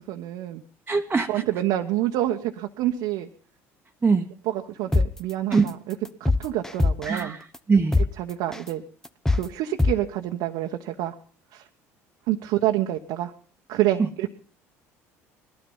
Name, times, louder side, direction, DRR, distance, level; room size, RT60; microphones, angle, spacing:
voice 1, 0.1-0.6 1.3-3.3 4.4-7.4 8.0-8.8 9.3-11.1 11.5-11.6 12.3-13.3 13.7-14.3, right 13 dB, 70° right, 3 dB, 1.2 m, -27 dB
voice 2, 0.9-1.4 4.0-4.3 5.5-5.7 7.0-8.0, right 4 dB, 20° right, 2 dB, 1.3 m, -22 dB
sound 1, 4.9-5.1 5.5-5.7 6.0-7.2 7.5-7.6 7.9-8.1 8.5-8.7 9.0-9.4 9.8-9.9, left 2 dB, 5° left, 1.0 m, -21 dB
20.0 x 12.5 x 5.6 m, 0.42 s
hypercardioid pair, 70°, 7 cm